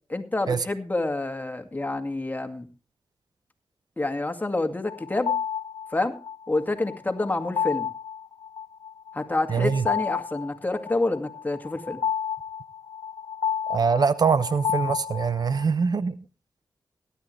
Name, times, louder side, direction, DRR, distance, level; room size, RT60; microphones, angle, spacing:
voice 1, 0.1-2.7 4.0-5.3 5.9-6.2 6.5-7.9 9.1-12.0, left 2 dB, 20° left, 2.3 m, -28 dB
sound 1, 4.9-15.6, left 8 dB, 65° left, 0.6 m, -31 dB
voice 2, 9.5-9.8 13.7-16.1, right 5 dB, 60° right, 0.9 m, -23 dB
17.5 x 11.0 x 3.3 m
cardioid pair, 50°, 8 cm